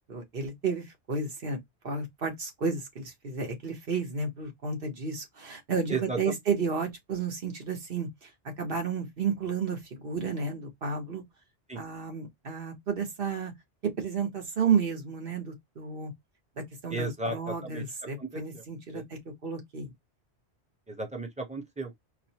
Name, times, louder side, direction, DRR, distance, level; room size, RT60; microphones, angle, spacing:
voice 1, 0.1-1.6 1.8-8.3 8.6-11.2 11.7-13.5 13.8-16.1 16.6-19.9, right 5 dB, 60° right, 1.3 m, -32 dB
voice 2, 16.9-17.8 18.2-18.4 18.9-19.0 20.9-21.9, right 2 dB, 5° right, 0.8 m, -34 dB
4.6 x 2.2 x 2.8 m
omnidirectional pair, 1.1 m